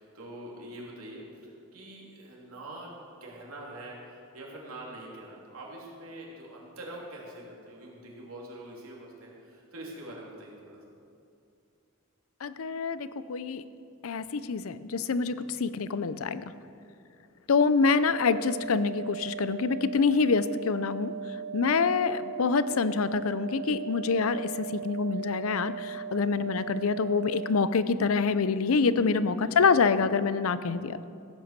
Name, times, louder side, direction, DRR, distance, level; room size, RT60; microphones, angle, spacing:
voice 1, 0.0-2.9 3.2-10.8 26.3-26.5 29.4-29.9, right 1 dB, 85° right, -3 dB, 3.2 m, -44 dB
voice 2, 12.4-13.6 14.0-16.4 17.5-21.1 21.5-31.0, left 5 dB, 80° left, 14 dB, 0.6 m, -26 dB
sound 1, 17.5-27.5, right 7 dB, 55° right, 1.1 m, -38 dB
16.0 x 8.8 x 6.7 m, 2.5 s
head